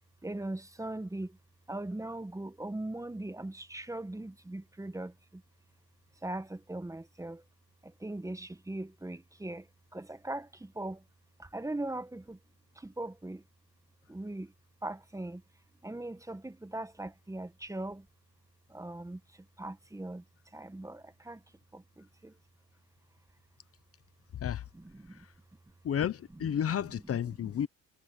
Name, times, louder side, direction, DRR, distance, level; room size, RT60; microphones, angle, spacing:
voice 1, 0.2-1.4 1.7-5.4 6.2-7.4 7.8-9.7 9.9-11.0 11.4-12.4 12.8-13.4 14.1-14.5 14.8-15.4 15.8-18.0 18.7-19.2 19.6-20.2 20.5-21.4 21.7-22.3 24.7-25.2, right 2 dB, 10° right, 1.2 m, -40 dB
voice 2, 25.8-27.7, left 9 dB, 50° left, 0.9 m, -32 dB
cardioid pair, 90°, 30 cm